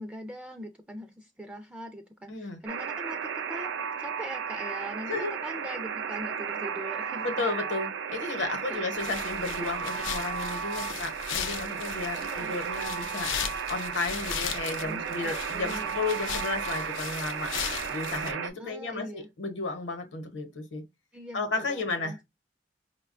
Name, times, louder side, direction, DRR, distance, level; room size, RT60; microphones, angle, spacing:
voice 1, 0.0-7.3 8.7-8.8 12.2-12.5 14.8-15.9 18.6-19.3 21.1-22.2, equal, 5° right, 0.3 m, -41 dB
voice 2, 2.3-2.6 5.1-5.3 7.2-13.3 13.7-17.5 17.9-20.8 21.3-22.2, left 3 dB, 70° left, 0.8 m, -33 dB
Alarm, 2.7-18.5, right 7 dB, 85° right, 0.4 m, -34 dB
sound 1, 8.9-18.3, left 8 dB, 90° left, 0.4 m, -37 dB
4.7 x 2.2 x 2.4 m
head